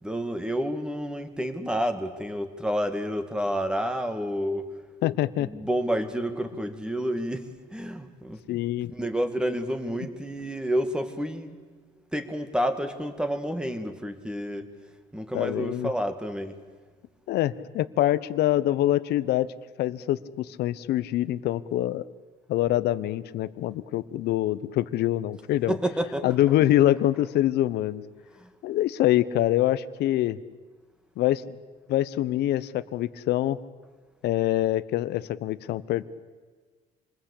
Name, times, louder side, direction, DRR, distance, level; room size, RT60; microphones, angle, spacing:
voice 1, 0.0-4.7 5.4-8.4 8.9-11.6 12.1-14.7 15.1-16.6 25.7-26.3 28.4-28.5, equal, 5° right, 8 dB, 2.2 m, -29 dB
voice 2, 5.0-5.5 8.5-8.9 15.3-15.9 17.3-19.5 19.8-22.0 22.5-25.8 26.2-28.0 28.6-30.4 31.2-31.6 31.9-33.6 34.2-36.0, left 14 dB, 75° left, 16 dB, 1.0 m, -25 dB
27.0 x 21.0 x 8.5 m, 1.5 s
cardioid pair, 110°, 17 cm